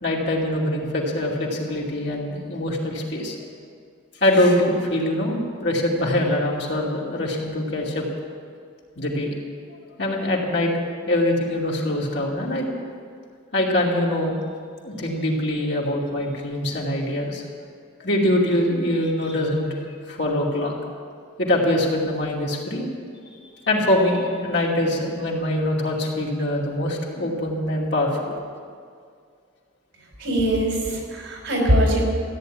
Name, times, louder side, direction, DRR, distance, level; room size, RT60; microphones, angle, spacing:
voice 1, 0.0-3.3 4.2-8.0 9.0-9.3 10.0-10.7 11.1-12.7 13.5-14.4 14.8-17.4 18.0-20.7 21.4-22.9 23.6-28.3, left 1 dB, 55° left, -3 dB, 2.7 m, -23 dB
voice 2, 30.2-32.0, equal, 75° right, 0 dB, 4.9 m, -21 dB
14.5 x 10.0 x 9.1 m, 2.2 s
head